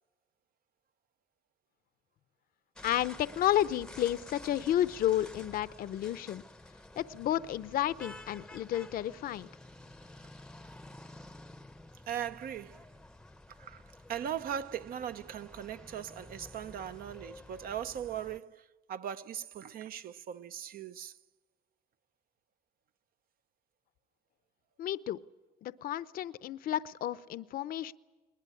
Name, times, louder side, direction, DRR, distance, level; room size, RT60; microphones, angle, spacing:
voice 1, 2.8-6.4 7.0-9.5 24.8-25.2 25.6-27.9, left 12 dB, 60° left, 0.7 m, -31 dB
sound 1, 2.8-18.4, left 1 dB, 5° left, 0.7 m, -51 dB
voice 2, 12.1-12.9 13.6-13.8 14.1-21.2, right 9 dB, 60° right, 0.8 m, -39 dB
21.0 x 20.5 x 9.8 m
cardioid pair, 110°, 17 cm